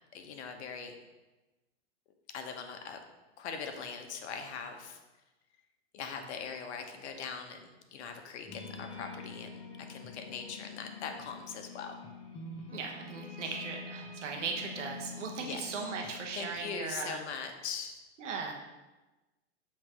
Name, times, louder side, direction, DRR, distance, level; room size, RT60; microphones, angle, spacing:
voice 1, 0.1-0.9 2.3-3.0 3.4-5.0 5.9-12.0 15.4-15.6 16.0-18.0, left 6 dB, 65° left, 5 dB, 1.0 m, -41 dB
sound 1, 8.5-16.7, left 3 dB, 15° left, 1.2 m, -46 dB
voice 2, 12.7-17.2 18.2-18.5, right 5 dB, 80° right, 1 dB, 1.1 m, -38 dB
7.4 x 3.2 x 4.9 m, 1.1 s
hypercardioid pair, 105°, 36 cm